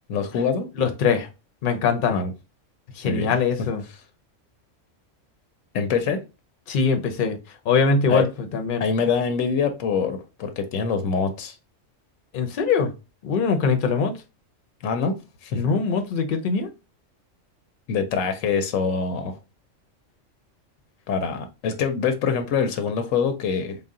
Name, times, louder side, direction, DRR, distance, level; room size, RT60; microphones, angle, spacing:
voice 1, 0.1-0.7 2.1-2.3 3.0-3.3 5.7-6.2 8.1-8.3 8.8-11.6 14.8-15.6 17.9-19.4 21.1-23.8, left 5 dB, 90° left, 1.0 m, -24 dB
voice 2, 0.7-1.3 1.6-2.2 2.9-3.8 6.7-8.9 12.3-12.9 13.2-14.2 15.5-16.7, left 5 dB, 50° left, 0.7 m, -22 dB
4.0 x 2.1 x 3.6 m
omnidirectional pair, 1.3 m